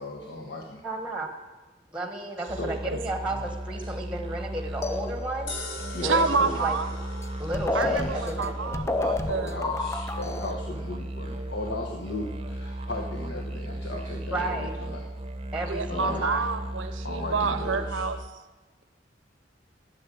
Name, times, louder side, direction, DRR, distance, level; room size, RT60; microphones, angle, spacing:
voice 1, 0.0-0.8 2.6-2.7 5.9-6.6 7.8-8.3 9.0-15.0 15.9-16.2 17.0-18.0, left 1 dB, 65° left, 1 dB, 1.2 m, -36 dB
voice 2, 0.8-1.3 1.9-5.5 6.0-6.2 6.6-6.8 7.4-8.0 8.3-8.8 14.3-14.7 15.5-16.4, right 2 dB, 5° right, 4 dB, 1.1 m, -33 dB
sound 1, 2.5-18.3, right 1 dB, 30° right, 0.8 m, -36 dB
sound 2, 4.8-5.6 7.2-7.3 7.5-10.5, left 3 dB, 15° left, 0.4 m, -30 dB
sound 3, 5.5-17.8, left 3 dB, 85° left, 2.2 m, -47 dB
voice 3, 6.0-6.9 7.7-9.6 15.7-18.2, right 4 dB, 85° right, 9 dB, 0.8 m, -28 dB
11.5 x 6.8 x 9.2 m, 1.2 s
head